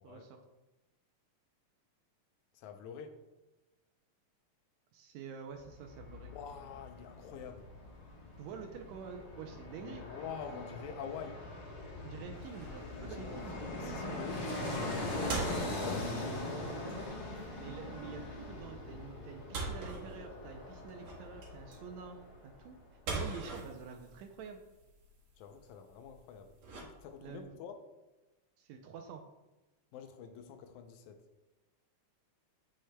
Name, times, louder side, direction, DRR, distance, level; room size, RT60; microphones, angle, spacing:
voice 1, 0.0-0.4 4.9-6.3 8.4-10.1 12.0-13.6 17.6-22.2 22.4-22.8 23.1-24.6 27.2-27.6 28.6-29.2, right 6 dB, 80° right, 4 dB, 1.7 m, -47 dB
voice 2, 2.5-3.2 6.3-7.7 9.8-11.4 13.0-14.5 15.8-16.8 25.4-27.8 29.9-31.2, left 7 dB, 80° left, 7 dB, 1.9 m, -46 dB
Fixed-wing aircraft airplane, 5.6-22.5 22.8-22.9, left 2 dB, 60° left, 1.0 m, -41 dB
sound 1, 12.3-27.4, right 3 dB, 50° right, 2.2 m, -45 dB
9.0 x 6.4 x 2.2 m, 1.1 s
omnidirectional pair, 3.6 m